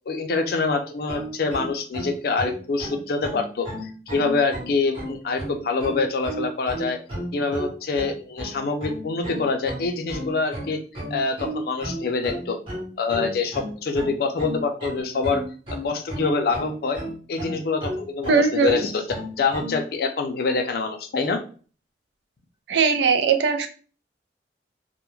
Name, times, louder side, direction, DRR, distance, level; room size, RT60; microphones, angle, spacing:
voice 1, 0.1-7.0 7.3-10.8 11.1-12.6 13.0-15.4 15.7-17.0 17.3-19.1 19.4-21.4, left 4 dB, 55° left, 5 dB, 0.4 m, -25 dB
sound 1, 1.1-19.8, equal, 30° right, 0.9 m, -33 dB
voice 2, 18.3-18.8 22.7-23.7, right 5 dB, 75° right, 7 dB, 0.4 m, -19 dB
2.3 x 2.0 x 3.0 m, 0.39 s
head